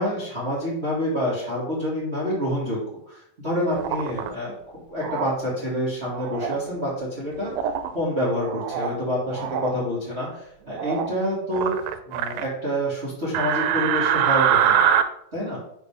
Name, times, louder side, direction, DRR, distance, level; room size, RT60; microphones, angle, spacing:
voice 1, 0.0-2.8 3.1-7.5 7.9-11.8 12.1-14.8 15.3-15.6, equal, 60° right, -7 dB, 0.6 m, -27 dB
sound 1, 3.7-4.3 5.0-5.3 6.1-6.6 7.5-7.9 8.4-9.0 9.3-9.7 10.7-11.1 11.5-12.4 13.3-15.0, right 9 dB, 85° right, 2.2 m, -23 dB
5.9 x 3.4 x 5.6 m, 0.74 s
omnidirectional pair, 4.0 m